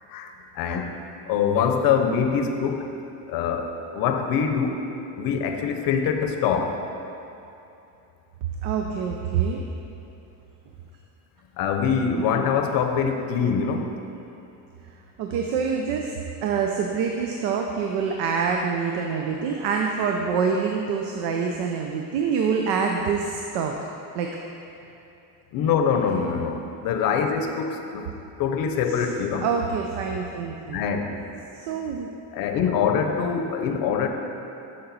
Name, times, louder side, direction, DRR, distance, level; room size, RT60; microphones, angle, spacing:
voice 1, 0.1-0.9 1.3-2.9 3.3-4.9 5.1-6.8 11.6-13.9 25.5-28.1 28.4-29.5 30.7-31.2 32.3-34.1, left 6 dB, 55° left, 5 dB, 0.7 m, -24 dB
voice 2, 8.6-9.6 15.2-23.8 24.1-24.3 29.4-30.9 31.6-32.1, right 6 dB, 75° right, 2 dB, 0.7 m, -26 dB
7.0 x 6.6 x 4.0 m, 2.9 s
cardioid pair, 165°, 43 cm